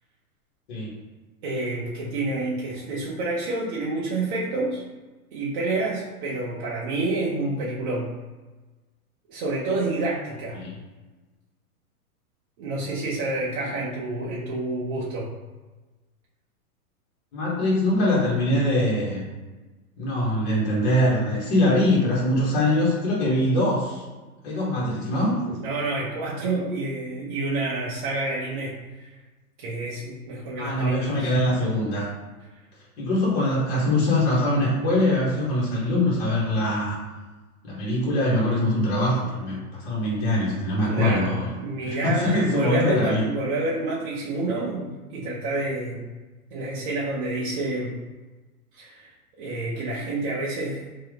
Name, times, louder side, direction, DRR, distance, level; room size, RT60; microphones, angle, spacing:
voice 1, 1.4-4.8 5.3-8.1 9.3-10.6 12.6-15.3 25.6-29.2 29.6-31.3 40.9-46.1 46.5-47.9 48.7-49.1 49.4-51.0, right 2 dB, 35° right, -6 dB, 0.6 m, -28 dB
voice 2, 17.3-19.2 20.0-24.0 24.4-25.6 30.6-32.1 33.0-37.0 37.6-41.5 41.8-43.3, left 1 dB, 45° left, -6 dB, 1.4 m, -23 dB
3.6 x 2.8 x 3.4 m, 1.2 s
hypercardioid pair, 150°, 45 cm